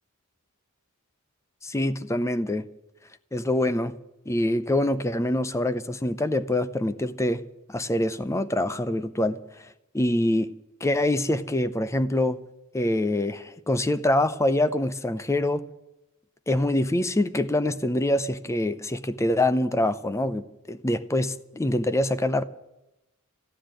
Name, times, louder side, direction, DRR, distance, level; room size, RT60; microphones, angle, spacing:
voice 1, 1.6-2.7 3.3-4.0 4.3-9.6 9.9-10.5 10.8-12.4 12.7-15.7 16.5-22.4, left 1 dB, 15° left, 0.6 m, -25 dB
15.0 x 9.9 x 8.9 m
head